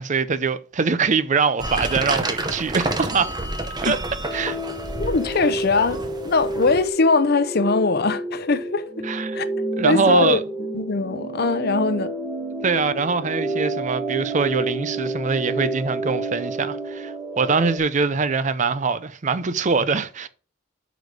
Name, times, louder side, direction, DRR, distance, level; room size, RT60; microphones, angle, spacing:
voice 1, 0.0-3.3 3.8-4.0 4.3-4.6 9.0-9.4 9.8-10.4 12.6-20.3, right 4 dB, 40° right, 0.5 m, -23 dB
sound 1, 1.6-6.9, right 2 dB, 20° right, 0.9 m, -29 dB
sound 2, 4.2-17.8, right 2 dB, ahead, 1.7 m, -30 dB
voice 2, 5.0-8.8 9.3-9.5 9.8-10.4 10.7-12.1, left 3 dB, 55° left, 0.7 m, -21 dB
7.9 x 5.2 x 4.9 m
head